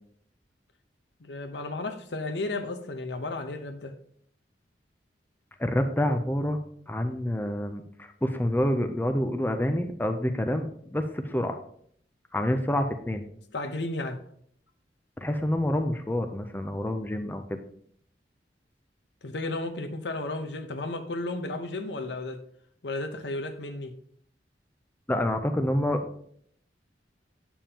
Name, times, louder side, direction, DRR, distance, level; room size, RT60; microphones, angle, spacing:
voice 1, 1.2-3.9 13.5-14.2 19.2-22.4 22.8-23.9, left 2 dB, 75° left, 8 dB, 0.9 m, -33 dB
voice 2, 5.6-6.6 6.9-11.6 12.3-13.2 15.2-17.6 25.1-26.1, left 1 dB, 10° left, 6 dB, 0.4 m, -27 dB
8.9 x 7.2 x 2.9 m, 0.64 s
head